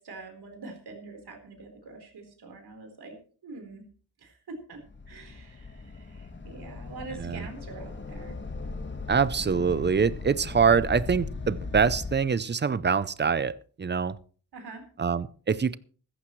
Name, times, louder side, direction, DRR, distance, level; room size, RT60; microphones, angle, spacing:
voice 1, 0.0-3.2 3.4-3.8 4.2-4.8 5.1-8.4 14.5-14.8, right 3 dB, 90° right, 4.1 m, -44 dB
sound 1, 4.8-12.1, left 3 dB, 30° left, 1.4 m, -38 dB
voice 2, 9.1-14.2 15.0-15.8, right 6 dB, 30° right, 0.5 m, -25 dB
16.0 x 14.5 x 3.1 m
wide cardioid pair, 135°, 38 cm